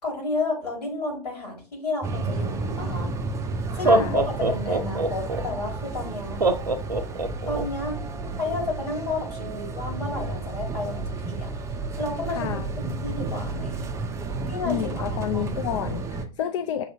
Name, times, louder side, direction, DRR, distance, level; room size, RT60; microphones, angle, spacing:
voice 1, 0.0-3.1 3.7-6.4 7.5-8.0 8.4-11.5 12.0-12.5 12.8-13.9 14.5-15.5, left 3 dB, 70° left, 1 dB, 2.1 m, -31 dB
sound 1, 2.0-16.3, right 3 dB, 15° right, 0.5 m, -32 dB
Laughter, 3.0-3.1 3.7-5.4 6.4-7.6, right 2 dB, 90° right, 0.5 m, -23 dB
voice 2, 3.7-4.2 12.3-12.7 14.7-16.8, left 10 dB, 50° left, 6 dB, 0.4 m, -30 dB
6.8 x 2.7 x 2.6 m, 0.36 s
figure-of-eight pair, 95°, 20 cm